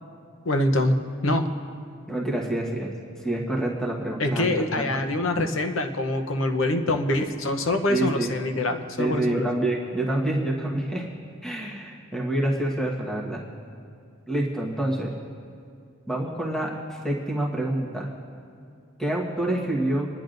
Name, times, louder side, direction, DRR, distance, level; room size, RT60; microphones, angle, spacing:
voice 1, 0.4-1.5 4.2-9.5, left 1 dB, 65° left, 6 dB, 0.8 m, -25 dB
voice 2, 2.1-2.9 3.2-5.0 7.9-8.3 9.0-11.1 11.4-13.4 14.3-15.1 16.1-18.1 19.0-20.1, right 1 dB, 5° left, -3 dB, 1.3 m, -27 dB
28.5 x 10.5 x 2.6 m, 2.3 s
head